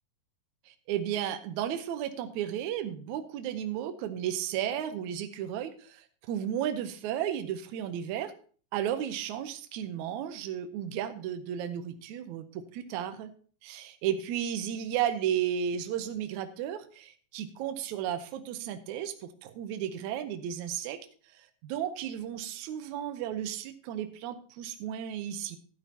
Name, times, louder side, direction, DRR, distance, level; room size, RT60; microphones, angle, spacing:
voice 1, 0.7-8.3 8.7-13.3 13.6-21.0 21.3-25.6, right 10 dB, 75° right, 8 dB, 2.0 m, -34 dB
12.5 x 11.0 x 2.8 m, 0.41 s
omnidirectional pair, 3.9 m